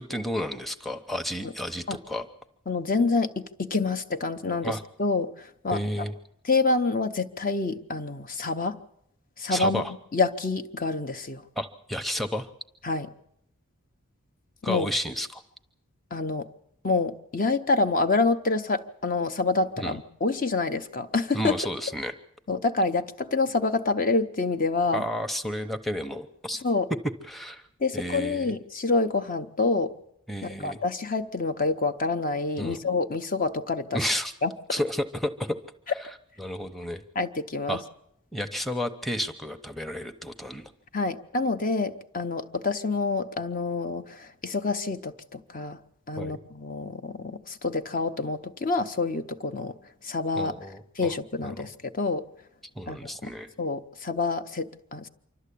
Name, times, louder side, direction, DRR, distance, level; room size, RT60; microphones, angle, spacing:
voice 1, 0.0-2.3 4.6-4.8 5.7-6.1 9.5-9.9 11.6-12.5 14.6-15.4 19.8-20.0 21.3-22.1 24.9-26.6 27.3-27.6 27.9-28.5 30.3-30.8 32.6-32.8 33.9-34.3 34.7-35.6 36.4-37.0 37.7-37.8 38.3-40.7 46.2-46.4 50.4-51.1 51.4-51.7 52.8-53.5, equal, ahead, 7 dB, 0.8 m, -31 dB
voice 2, 2.7-5.8 6.4-8.8 9.4-9.8 10.1-11.4 12.8-13.1 14.6-14.9 16.1-16.5 16.8-21.6 22.5-25.0 26.6-26.9 27.8-29.9 30.4-34.0 34.4-34.5 37.1-37.8 40.9-45.8 46.1-49.8 50.0-50.5 51.0-52.2 52.9-53.3 53.6-55.1, left 3 dB, 40° left, 8 dB, 0.8 m, -27 dB
26.0 x 12.5 x 8.4 m, 0.76 s
head